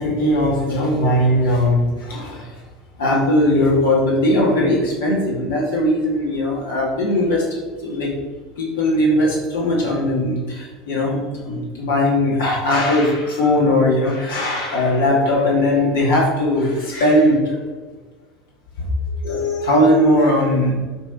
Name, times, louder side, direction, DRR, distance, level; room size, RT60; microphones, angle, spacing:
voice 1, 0.0-2.5 3.0-8.1 8.6-17.6 18.8-18.9 19.2-20.8, left 1 dB, 65° left, -3 dB, 2.8 m, -19 dB
11.5 x 3.9 x 4.8 m, 1.3 s
figure-of-eight pair, 70°, 0 cm